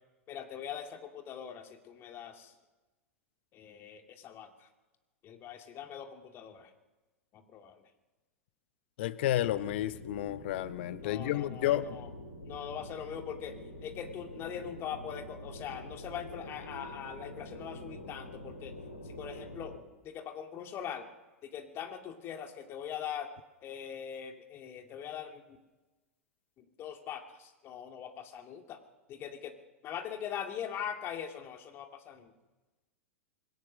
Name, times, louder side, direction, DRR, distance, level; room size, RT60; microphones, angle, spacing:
voice 1, 0.3-2.5 3.5-4.7 5.2-6.7 7.3-7.8 11.0-12.1 12.4-18.7 19.0-19.8 20.0-21.1 21.4-23.4 23.6-25.6 26.6-28.8 29.1-29.5 29.8-32.3, left 8 dB, 35° left, 5 dB, 2.6 m, -42 dB
voice 2, 9.0-12.0, left 13 dB, 55° left, 15 dB, 1.1 m, -31 dB
sound 1, 9.3-19.8, left 1 dB, 80° left, 3.1 m, -46 dB
26.5 x 21.0 x 6.4 m, 1.2 s
figure-of-eight pair, 90°, 7 cm